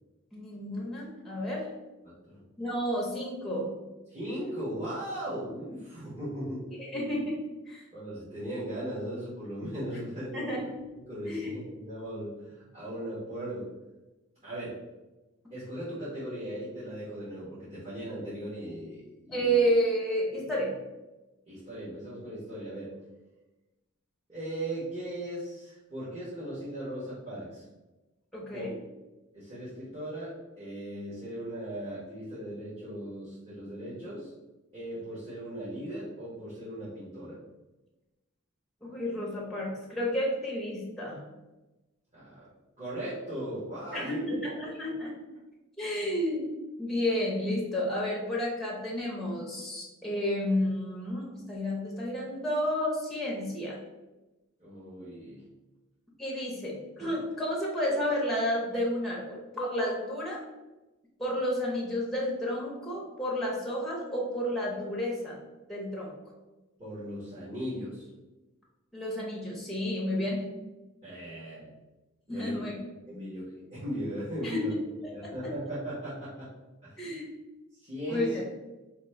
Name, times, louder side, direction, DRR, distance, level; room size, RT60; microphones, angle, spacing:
voice 1, 0.3-1.7 2.6-3.7 6.8-7.4 7.7-7.8 10.3-10.6 11.3-11.5 19.3-20.7 28.3-28.7 38.8-41.2 43.9-45.1 45.8-46.5 46.8-53.8 56.2-60.4 61.2-65.4 65.7-66.1 68.9-70.5 72.3-72.8 73.1-73.2 74.4-74.6 75.2-75.3 77.0-77.2 78.1-78.4, equal, ahead, -4 dB, 0.8 m, -31 dB
voice 2, 2.0-2.4 4.1-6.6 7.9-10.4 11.1-13.7 14.4-14.7 15.5-19.6 21.5-22.9 24.3-27.6 28.5-28.6 29.3-34.3 34.7-37.4 42.1-42.5 42.8-44.4 54.6-55.4 66.8-68.1 71.0-71.7 72.3-72.6 73.1-74.7 75.1-76.5 76.8-77.1 77.7-78.4, right 1 dB, 30° right, -12 dB, 1.3 m, -38 dB
2.9 x 2.8 x 4.4 m, 1.1 s
head